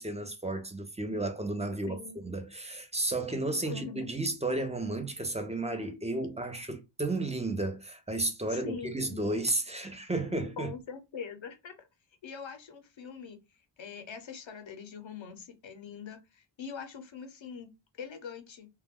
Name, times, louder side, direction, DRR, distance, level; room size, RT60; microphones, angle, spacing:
voice 1, 0.0-10.7, right 2 dB, 15° right, 0.6 m, -33 dB
voice 2, 1.9-2.2 3.7-4.1 8.5-9.2 10.6-11.7 12.2-13.4 13.8-17.7 18.0-18.7, left 6 dB, 75° left, 0.7 m, -43 dB
2.2 x 2.1 x 3.5 m
wide cardioid pair, 65°, 46 cm